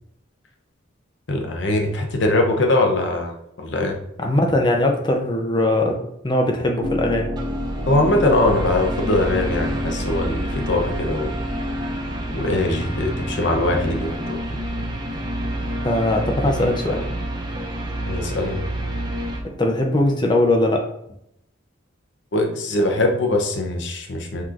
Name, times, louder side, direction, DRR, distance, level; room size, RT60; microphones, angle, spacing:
voice 1, 1.3-4.0 7.9-11.3 12.3-14.4 16.6-17.0 18.1-18.6 22.3-24.4, left 2 dB, 65° left, 3 dB, 0.7 m, -22 dB
voice 2, 4.2-7.3 15.8-17.0 19.4-20.9, left 1 dB, 20° left, 2 dB, 0.5 m, -20 dB
sound 1, 6.8-20.1, left 1 dB, 70° right, 1.4 m, -33 dB
sound 2, 7.4-19.4, right 1 dB, 20° right, 0.5 m, -29 dB
5.8 x 3.0 x 2.4 m, 0.76 s
head